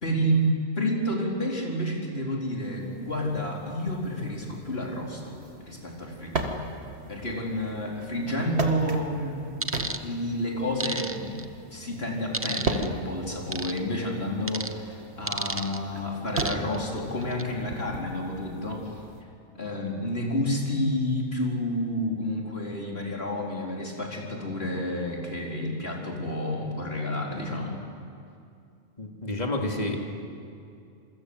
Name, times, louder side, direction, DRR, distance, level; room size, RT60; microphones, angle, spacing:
voice 1, 0.0-0.5 0.8-5.4 5.7-6.6 7.1-9.4 10.0-11.4 11.7-18.9 19.5-27.8, equal, 50° left, -1 dB, 4.5 m, -30 dB
sound 1, 2.6-19.2, right 2 dB, 55° right, 2.2 m, -37 dB
sound 2, 9.6-10.0 10.8-11.4 12.3-12.9 13.5-13.8 14.5-14.7 15.3-15.8 16.4-16.8 17.2-17.4, right 2 dB, 15° right, 0.7 m, -31 dB
voice 2, 29.0-30.0, left 2 dB, 35° left, 1 dB, 2.9 m, -29 dB
27.5 x 23.5 x 8.1 m, 2.5 s
omnidirectional pair, 1.3 m